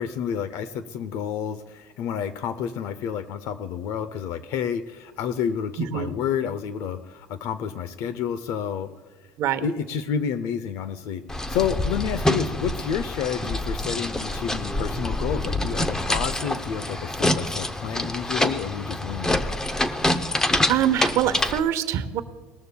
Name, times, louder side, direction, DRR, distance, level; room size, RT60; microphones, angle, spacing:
voice 1, 0.0-8.9 9.6-19.4, left 8 dB, 60° left, 13 dB, 0.6 m, -30 dB
voice 2, 5.8-6.1 9.4-9.6 20.7-22.2, right 10 dB, 55° right, 10 dB, 0.9 m, -24 dB
sound 1, 11.3-21.6, left 1 dB, 10° left, 0.6 m, -26 dB
19.5 x 14.0 x 2.2 m, 1.4 s
cardioid pair, 135°, 6 cm